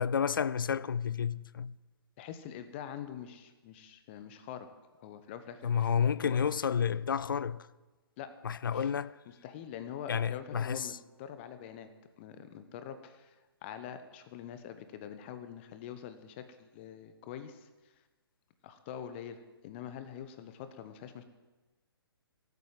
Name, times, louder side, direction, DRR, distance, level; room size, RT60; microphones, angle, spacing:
voice 1, 0.0-1.8 5.6-7.7 8.4-9.1 10.1-11.0, left 7 dB, 55° left, 0.4 m, -30 dB
voice 2, 2.2-4.7 5.0-5.9 6.2-6.4 8.2-8.3 8.7-8.9 9.3-11.9 12.2-17.9 18.6-21.2, left 9 dB, 25° left, 0.9 m, -45 dB
13.5 x 8.6 x 7.6 m
figure-of-eight pair, 130°, 13 cm